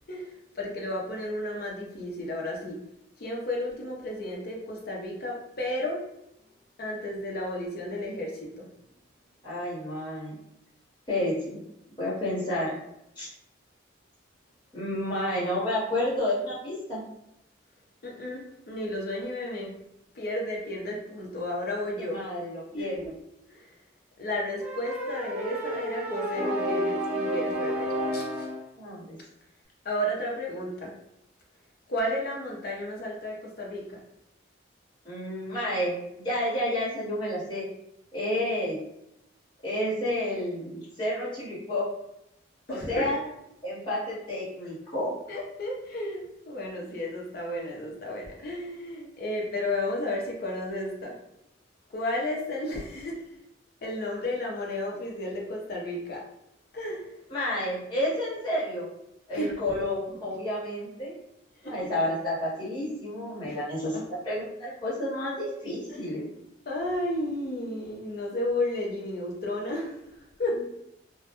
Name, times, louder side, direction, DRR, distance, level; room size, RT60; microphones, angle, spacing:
voice 1, 0.1-2.8 3.2-6.0 6.8-8.7 18.0-19.7 20.1-22.2 22.7-23.1 23.5-23.8 24.2-28.5 29.8-31.0 31.9-34.0 42.7-43.1 45.3-51.1 51.9-53.2 53.8-56.2 56.7-57.1 59.3-59.5 61.6-61.9 63.4-64.0 65.9-66.1 66.7-70.6, left 1 dB, 50° left, -1 dB, 0.5 m, -33 dB
voice 2, 9.4-10.4 11.1-11.6 12.0-12.8 13.2-13.3 14.7-17.0 22.0-22.9 28.8-29.2 35.0-37.6 38.1-38.8 39.6-41.9 42.7-43.2 43.6-45.1 57.3-58.9 59.3-61.1 61.6-63.9 64.2-66.3, left 1 dB, 25° left, -9 dB, 1.0 m, -30 dB
sound 1, 24.6-28.6, equal, 5° right, 0.3 m, -30 dB
2.1 x 2.1 x 2.8 m, 0.81 s
head